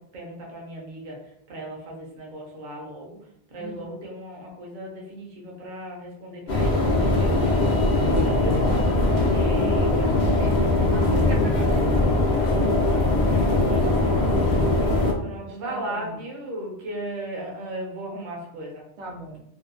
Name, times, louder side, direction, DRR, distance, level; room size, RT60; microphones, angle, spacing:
voice 1, 0.1-1.2 1.5-3.2 3.5-7.5 7.9-8.8 9.1-10.1 10.8-10.9 11.3-11.4 13.2-14.7 15.2-18.8, right 1 dB, 50° right, -1 dB, 0.8 m, -36 dB
voice 2, 3.6-3.9 10.0-12.3 12.7-13.3 15.4-16.2 19.0-19.4, equal, 85° right, 0 dB, 0.9 m, -39 dB
sound 1, 6.5-15.1, left 2 dB, 55° left, 0.5 m, -21 dB
2.6 x 2.2 x 2.4 m, 0.75 s
omnidirectional pair, 1.2 m